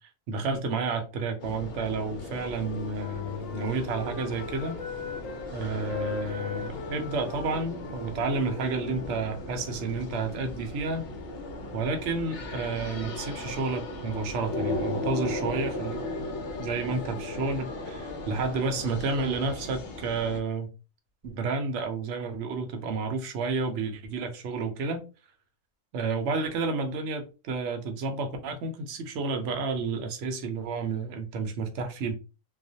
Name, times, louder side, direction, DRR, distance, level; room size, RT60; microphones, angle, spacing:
voice 1, 0.3-4.8 5.5-11.1 11.7-16.3 16.6-20.7 21.2-25.0 25.9-32.2, right 4 dB, 65° right, 0.8 m, -31 dB
sound 1, 1.4-20.4, left 2 dB, 60° left, 0.7 m, -37 dB
Wind instrument woodwind instrument, 2.2-5.5 5.8-9.6, left 6 dB, 90° left, 1.0 m, -40 dB
2.4 x 2.1 x 2.6 m
omnidirectional pair, 1.4 m